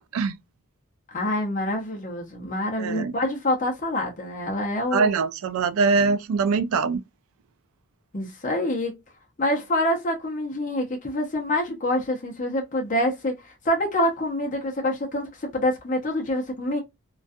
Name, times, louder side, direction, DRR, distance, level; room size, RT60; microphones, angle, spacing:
voice 1, 1.1-5.2 8.1-9.0 9.4-16.8, left 1 dB, 35° left, 0.6 m, -26 dB
voice 2, 2.8-3.1 4.9-7.0, right 4 dB, 75° right, 0.3 m, -23 dB
2.3 x 2.3 x 2.5 m
head